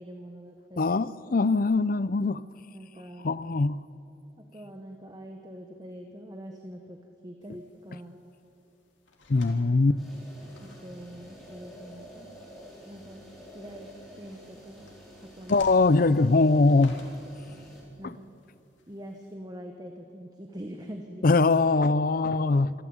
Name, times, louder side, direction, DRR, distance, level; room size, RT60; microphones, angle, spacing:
voice 1, 0.0-0.9 1.3-1.5 2.7-3.4 4.4-8.2 9.9-10.0 10.6-12.4 12.9-13.2 13.5-13.9 14.2-14.9 15.2-15.6 16.8-17.0 18.0-18.3 18.9-21.2, equal, 20° right, 4 dB, 1.2 m, -44 dB
voice 2, 0.8-2.4 3.2-3.8 9.3-10.0 15.5-17.0 18.0-18.2 21.2-22.7, left 3 dB, 50° left, 17 dB, 0.5 m, -22 dB
sound 1, 7.4-19.3, left 2 dB, 90° left, 3.2 m, -56 dB
sound 2, 10.0-17.8, equal, ahead, 5.0 m, -49 dB
25.5 x 13.5 x 8.8 m, 2.8 s
head